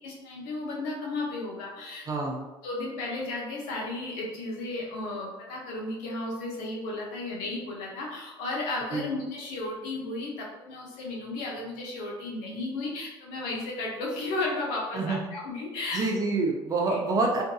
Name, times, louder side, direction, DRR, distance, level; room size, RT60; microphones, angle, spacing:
voice 1, 0.0-2.3 2.6-16.1 16.9-17.0, left 2 dB, 85° left, -2 dB, 0.8 m, -34 dB
voice 2, 2.1-2.5 8.9-9.2 14.9-15.3 15.9-17.4, right 3 dB, 35° right, 1 dB, 0.5 m, -27 dB
2.6 x 2.6 x 2.3 m, 1.0 s
supercardioid pair, 100°, 11 cm